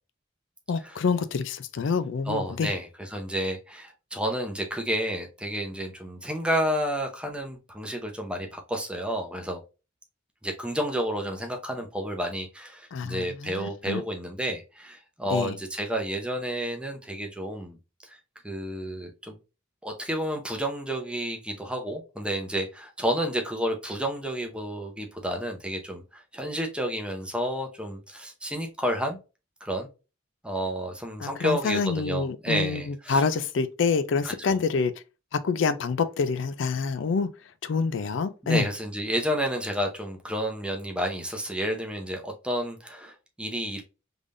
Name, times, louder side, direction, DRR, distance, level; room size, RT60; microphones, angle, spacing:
voice 1, 0.7-2.7 12.9-14.0 15.3-15.5 31.2-34.9 35.3-37.3 37.6-38.7, left 5 dB, 70° left, 0.4 m, -27 dB
voice 2, 2.3-9.6 10.4-17.8 18.0-18.2 18.4-19.3 19.8-29.2 29.6-29.9 30.4-33.3 34.2-34.6 38.4-43.8, equal, 5° right, 0.7 m, -30 dB
3.7 x 3.4 x 2.5 m
head